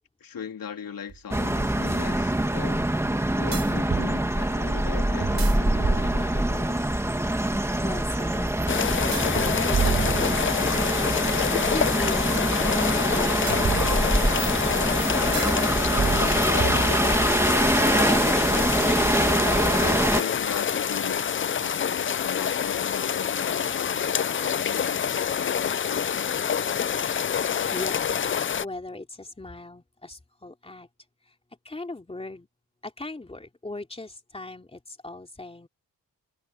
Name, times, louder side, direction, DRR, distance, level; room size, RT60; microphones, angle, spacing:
voice 1, 0.2-2.9 3.4-6.8 19.7-26.3, left 7 dB, 65° left, 3.4 m, -39 dB
sound 1, 1.1-1.2 3.5-4.1 5.2-6.5 9.1-10.8 13.5-14.5 15.3-15.6 16.0-17.3, right 6 dB, 45° right, 4.5 m, -30 dB
sound 2, 1.3-20.2, right 1 dB, 5° right, 1.8 m, -24 dB
voice 2, 7.8-8.5 8.8-14.1 27.7-30.9 31.6-32.5 32.8-35.7, left 2 dB, 15° left, 3.3 m, -39 dB
sound 3, 8.7-28.6, left 8 dB, 35° left, 0.5 m, -27 dB
wide cardioid pair, 130°, 36 cm